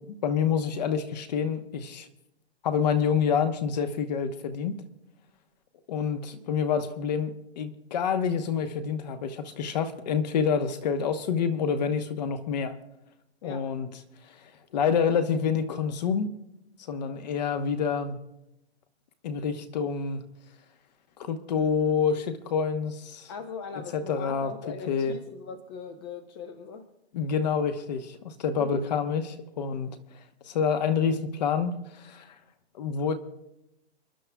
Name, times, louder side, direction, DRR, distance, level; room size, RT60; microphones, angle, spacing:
voice 1, 0.1-2.1 2.6-4.8 5.9-12.8 13.4-13.9 14.7-16.3 16.9-18.2 19.2-20.2 21.2-23.3 23.9-24.5 24.9-25.1 27.1-29.9 30.5-32.3 32.8-33.1, left 6 dB, 40° left, 9 dB, 1.1 m, -27 dB
voice 2, 23.3-26.9 28.6-28.9, left 5 dB, 25° left, 8 dB, 0.7 m, -40 dB
29.5 x 11.0 x 2.3 m, 0.88 s
hypercardioid pair, 155°, 33 cm